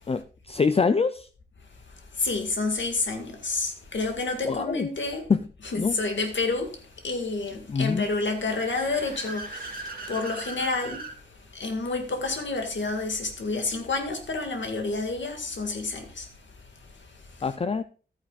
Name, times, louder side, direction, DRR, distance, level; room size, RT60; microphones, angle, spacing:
voice 1, 0.1-1.3 4.4-4.9 5.3-5.4 5.8-6.0 7.7-8.1 17.4-17.8, left 5 dB, 35° left, 0.4 m, -25 dB
voice 2, 1.9-5.3 5.6-17.5, left 3 dB, 90° left, 2.0 m, -30 dB
Car / Accelerating revving vroom, 7.9-11.2, right 2 dB, 50° right, 2.1 m, -39 dB
13.5 x 9.3 x 2.4 m
wide cardioid pair, 110°, 19 cm